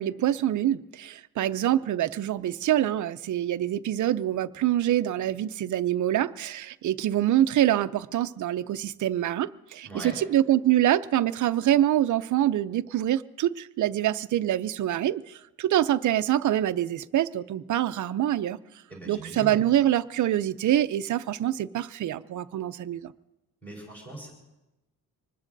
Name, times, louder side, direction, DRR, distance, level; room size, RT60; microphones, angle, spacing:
voice 1, 0.0-18.6 19.1-23.1, right 12 dB, 50° right, 13 dB, 0.5 m, -25 dB
voice 2, 9.8-10.2 18.9-19.6 23.6-24.3, right 1 dB, 5° left, -3 dB, 4.2 m, -40 dB
25.5 x 20.5 x 2.6 m, 0.97 s
wide cardioid pair, 160°, 37 cm